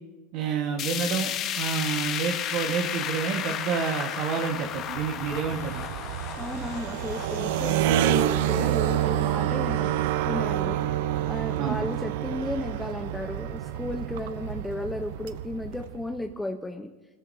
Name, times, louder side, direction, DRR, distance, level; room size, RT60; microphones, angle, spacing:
voice 1, 0.3-1.3 1.5-5.9 11.6-11.8, right 6 dB, 60° right, 1 dB, 1.5 m, -29 dB
sound 1, 0.8-10.9 11.3-11.4 11.8-11.9 12.8-12.9, left 10 dB, 45° left, 0.9 m, -34 dB
sound 2, 4.7-16.2, right 11 dB, 75° right, 0.6 m, -28 dB
voice 2, 6.4-10.0 10.3-10.8 11.3-16.9, left 1 dB, 5° left, 4 dB, 0.8 m, -34 dB
24.0 x 14.0 x 2.8 m, 1.2 s
supercardioid pair, 115°, 0 cm